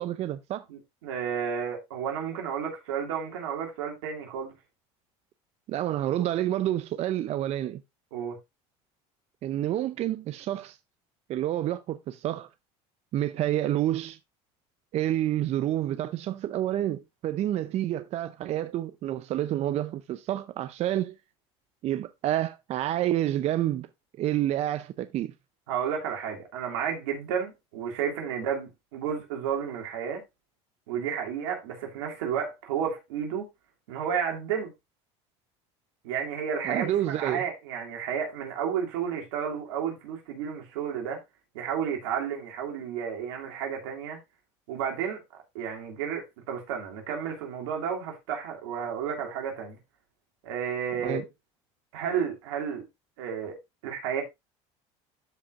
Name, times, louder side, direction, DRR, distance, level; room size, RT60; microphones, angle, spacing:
voice 1, 0.0-0.6 5.7-7.8 9.4-10.8 11.3-12.5 13.1-14.2 14.9-21.2 21.8-23.9 24.2-25.3 36.6-37.4 51.0-51.2, right 12 dB, 50° right, 0.6 m, -28 dB
voice 2, 0.7-4.5 8.1-8.4 25.7-30.2 30.9-33.5 33.9-34.7 36.0-41.2 41.5-44.2 44.7-45.2 45.5-49.8 50.4-51.2 51.9-52.8 53.2-53.6 53.8-54.2, right 7 dB, 90° right, 2.8 m, -32 dB
13.0 x 5.1 x 2.5 m
supercardioid pair, 100°, 14 cm